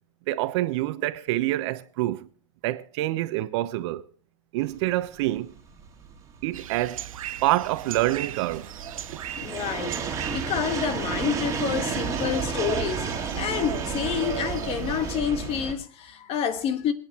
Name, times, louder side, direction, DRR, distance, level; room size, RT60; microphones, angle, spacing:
voice 1, 0.3-2.3 2.6-4.0 4.5-5.5 6.4-7.1 7.4-8.7, right 16 dB, 55° right, 1.0 m, -26 dB
sound 1, 4.8-15.7, right 6 dB, 20° right, 2.8 m, -32 dB
sound 2, 6.5-15.2, right 11 dB, 80° right, 0.8 m, -39 dB
voice 2, 9.4-16.9, left 8 dB, 35° left, 1.6 m, -28 dB
26.5 x 9.4 x 3.1 m
hypercardioid pair, 120°, 17 cm